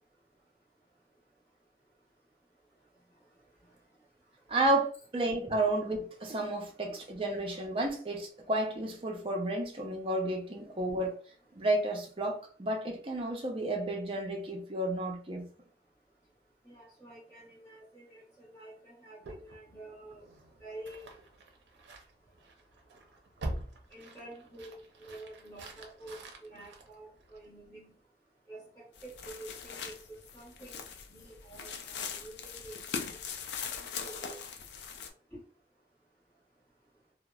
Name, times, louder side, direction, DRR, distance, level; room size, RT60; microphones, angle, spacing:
voice 1, 4.5-11.1 11.6-15.5, right 1 dB, 30° right, 0.5 m, -31 dB
voice 2, 16.6-20.3 20.6-21.1 23.9-27.9 28.5-30.8 31.1-32.9 33.7-34.4 35.3-35.4, right 1 dB, 15° left, 0.9 m, -49 dB
sound 1, 19.2-27.7, right 1 dB, 85° right, 0.5 m, -46 dB
sound 2, 28.9-35.1, left 6 dB, 70° left, 0.4 m, -41 dB
2.8 x 2.0 x 2.2 m
head